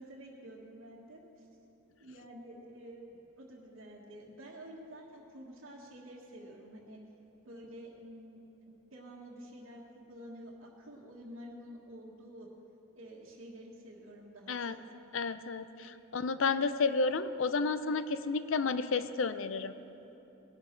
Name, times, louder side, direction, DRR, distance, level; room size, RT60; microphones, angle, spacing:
voice 1, 0.0-1.5 2.0-7.0 7.4-12.5 12.9-14.8 15.8-15.9, equal, 75° right, -4 dB, 1.6 m, -50 dB
voice 2, 15.1-19.7, left 4 dB, 70° left, 12 dB, 0.6 m, -31 dB
19.5 x 12.0 x 4.6 m, 2.9 s
head